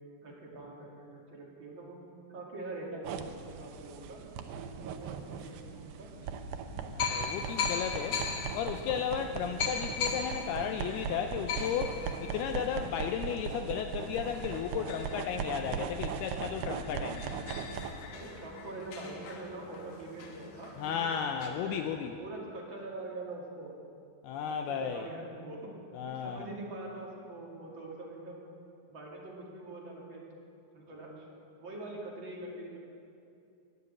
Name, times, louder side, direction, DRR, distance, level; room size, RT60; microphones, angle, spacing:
voice 1, 0.2-2.0 2.3-4.2 4.8-6.1 18.1-21.8 22.2-23.7 24.5-25.7 26.0-28.4 28.9-30.2 30.7-31.3 31.6-32.8, right 2 dB, 35° right, -3 dB, 2.5 m, -44 dB
sound 1, 3.0-17.9, right 6 dB, 85° right, 1.9 m, -39 dB
sound 2, 4.3-22.1, equal, 70° right, 5.3 m, -57 dB
sound 3, 5.3-5.4 6.2-6.3 7.0-16.1 16.5-16.6 16.8-21.5, left 6 dB, 65° left, 1.9 m, -39 dB
voice 2, 6.8-8.2 8.5-17.4 20.8-22.1 24.2-25.1 25.9-26.5, left 8 dB, 80° left, 6 dB, 2.4 m, -34 dB
21.0 x 7.0 x 8.6 m, 2.5 s
omnidirectional pair, 4.9 m